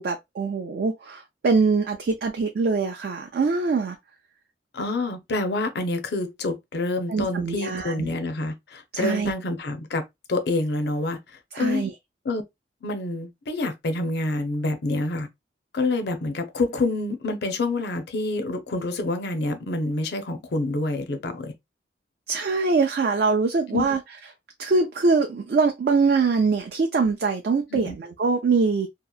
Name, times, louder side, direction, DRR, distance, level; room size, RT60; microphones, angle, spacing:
voice 1, 0.0-4.0 7.1-8.1 8.9-9.3 11.5-11.9 22.3-24.0 24.6-28.9, right 4 dB, 60° right, 0.4 m, -23 dB
voice 2, 4.7-10.0 10.3-11.2 11.6-11.8 12.2-12.4 12.8-15.3 15.7-21.5 23.7-23.8 27.7-27.9, left 2 dB, 65° left, 0.5 m, -27 dB
2.8 x 2.1 x 2.3 m
head